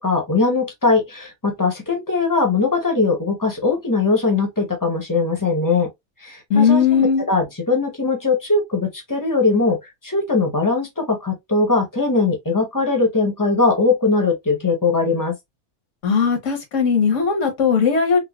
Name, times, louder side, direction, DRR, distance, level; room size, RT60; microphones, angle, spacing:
voice 1, 0.0-5.9 6.2-9.8 10.0-15.3, left 3 dB, 20° left, 0.7 m, -20 dB
voice 2, 6.5-7.2 16.0-18.2, left 6 dB, 90° left, 1.4 m, -18 dB
3.8 x 2.2 x 2.2 m
omnidirectional pair, 1.3 m